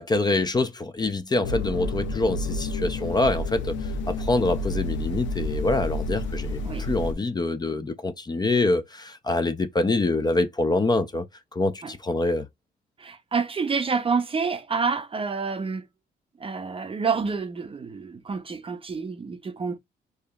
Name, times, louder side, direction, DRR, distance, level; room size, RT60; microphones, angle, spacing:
voice 1, 0.0-11.3 11.5-12.5, left 2 dB, 20° left, 0.6 m, -25 dB
sound 1, 1.4-7.1, left 2 dB, 90° left, 0.6 m, -30 dB
voice 2, 13.0-15.8 16.4-19.8, right 5 dB, 30° right, 0.6 m, -28 dB
4.8 x 2.8 x 2.3 m
cardioid pair, 90°, 19 cm